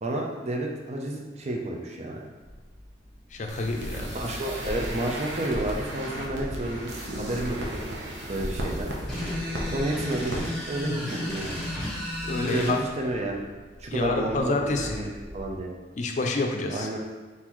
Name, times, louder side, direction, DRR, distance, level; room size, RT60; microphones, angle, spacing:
voice 1, 0.0-2.2 4.0-6.9 7.2-7.8 8.3-8.9 9.7-11.6 12.4-13.4 13.8-15.7 16.7-17.0, right 1 dB, 40° right, 0 dB, 0.6 m, -31 dB
sound 1, 2.4-15.6, equal, 20° right, 1.2 m, -46 dB
voice 2, 3.3-4.1 12.2-12.8 13.9-15.0 16.0-16.9, left 2 dB, 40° left, 3 dB, 0.5 m, -28 dB
sound 2, 3.5-9.8 10.1-10.4 10.7-10.8, equal, 70° right, 0.9 m, -34 dB
sound 3, 9.1-12.8, left 1 dB, 5° left, 1.1 m, -33 dB
4.2 x 4.0 x 3.0 m, 1.3 s
head